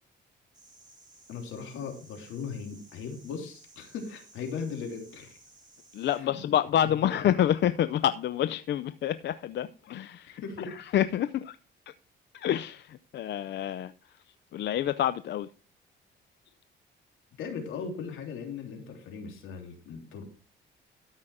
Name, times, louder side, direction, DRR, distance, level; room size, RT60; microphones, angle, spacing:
sound 1, 0.5-6.2, right 2 dB, 20° right, 5.5 m, -57 dB
voice 1, 1.3-5.4 6.1-6.5 6.8-7.1 10.3-10.7 17.4-20.2, left 5 dB, 85° left, 3.3 m, -38 dB
voice 2, 5.9-11.6 12.3-13.9 14.5-15.5, left 11 dB, 60° left, 0.5 m, -28 dB
13.0 x 5.7 x 4.9 m
cardioid pair, 90°, 20 cm